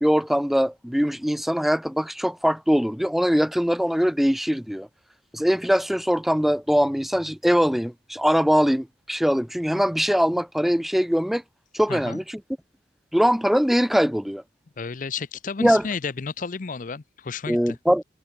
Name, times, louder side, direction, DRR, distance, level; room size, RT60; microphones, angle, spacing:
voice 1, 0.0-4.9 5.3-11.4 11.7-12.4 13.1-14.4 15.6-15.8 17.5-18.0, equal, ahead, 0.3 m, -22 dB
voice 2, 11.9-12.2 14.8-17.8, left 5 dB, 50° left, 0.6 m, -32 dB
head